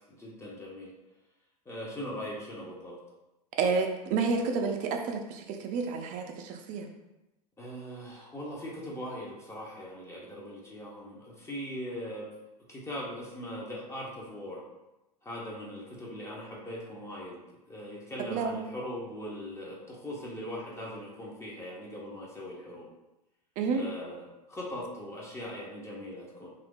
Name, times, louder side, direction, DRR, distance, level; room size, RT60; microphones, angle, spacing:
voice 1, 0.1-0.9 1.7-3.0 7.6-12.3 12.7-14.6 15.2-17.4 17.7-22.9 23.7-26.5, equal, 15° left, -4 dB, 0.7 m, -40 dB
voice 2, 3.6-6.9 18.3-18.6 23.6-23.8, right 4 dB, 40° right, 3 dB, 0.5 m, -30 dB
2.7 x 2.5 x 3.6 m, 0.97 s
figure-of-eight pair, 90°, 21 cm